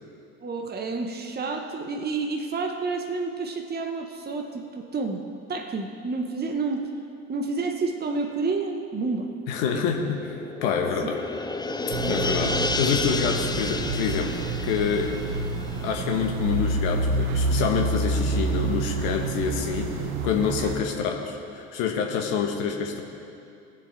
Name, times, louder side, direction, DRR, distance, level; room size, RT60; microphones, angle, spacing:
voice 1, 0.4-5.2 5.5-6.9 7.3-9.3 9.7-9.8, right 4 dB, 25° right, 3 dB, 1.2 m, -29 dB
voice 2, 9.5-10.4 10.6-11.2 12.1-14.4 14.6-15.2 15.8-23.0, left 6 dB, 65° left, 2 dB, 1.4 m, -27 dB
sound 1, 9.7-16.7 17.0-17.1, left 3 dB, 10° left, 0.7 m, -31 dB
sound 2, 11.9-20.8, right 2 dB, 65° right, 1.3 m, -28 dB
20.5 x 7.8 x 3.4 m, 2.5 s
hypercardioid pair, 65°, 40 cm